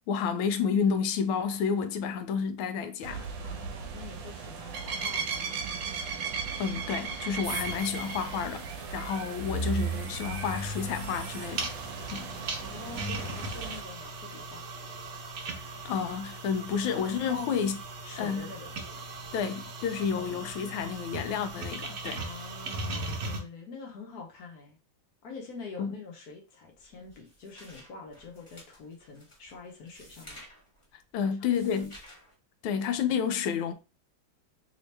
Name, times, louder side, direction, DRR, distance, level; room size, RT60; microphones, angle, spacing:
voice 1, 0.1-3.3 6.6-11.7 12.1-12.3 15.8-17.8 18.2-18.5 19.3-22.2 25.8-26.0 31.1-31.9 32.6-33.7, left 7 dB, 90° left, 1.4 m, -30 dB
sound 1, 3.0-13.8, right 6 dB, 75° right, 1.4 m, -37 dB
voice 2, 3.4-5.8 12.6-14.7 17.3-17.6 18.0-18.7 19.3-19.4 20.1-20.5 22.2-24.8 25.2-30.4 31.2-31.9, left 4 dB, 60° left, 1.1 m, -45 dB
sound 2, 7.4-23.4, right 2 dB, 55° right, 1.0 m, -38 dB
sound 3, 26.7-32.3, equal, 20° left, 0.8 m, -53 dB
3.4 x 2.7 x 3.2 m
omnidirectional pair, 2.2 m